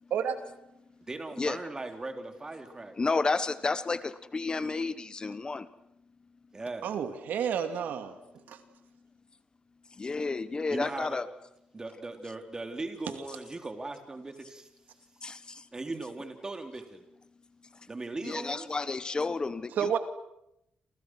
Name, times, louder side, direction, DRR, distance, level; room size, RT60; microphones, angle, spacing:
voice 1, 1.1-2.9 6.5-7.0 10.7-11.2 11.7-14.7 15.7-17.0 17.9-18.7, right 2 dB, 25° right, 6 dB, 3.8 m, -39 dB
voice 2, 3.0-5.7 9.9-11.3 15.2-15.7 18.2-20.0, left 3 dB, 30° left, 14 dB, 1.2 m, -31 dB
voice 3, 6.8-8.1 8.5-8.6 19.8-20.0, right 8 dB, 85° right, 8 dB, 2.5 m, -30 dB
28.5 x 28.0 x 6.3 m, 0.83 s
cardioid pair, 110°, 3 cm